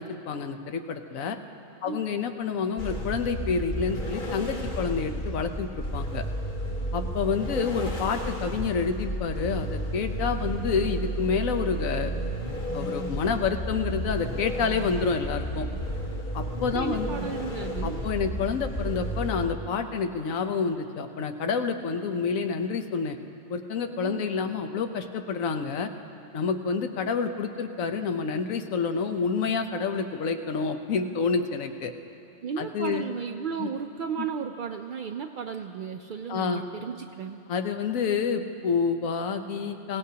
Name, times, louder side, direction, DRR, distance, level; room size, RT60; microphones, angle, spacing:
voice 1, 0.0-1.4 1.8-6.3 6.9-12.1 12.7-15.7 16.3-17.1 17.8-23.2 23.5-25.9 26.3-31.9 32.6-33.0 33.6-33.7 36.3-36.6 37.5-40.0, left 5 dB, 85° left, 7 dB, 1.2 m, -28 dB
sound 1, 2.8-19.5, right 1 dB, 40° left, 1.4 m, -32 dB
voice 2, 16.7-18.1 24.0-24.3 32.4-37.4, right 6 dB, 75° right, 5 dB, 0.4 m, -34 dB
23.0 x 17.0 x 2.8 m, 2.9 s
omnidirectional pair, 1.4 m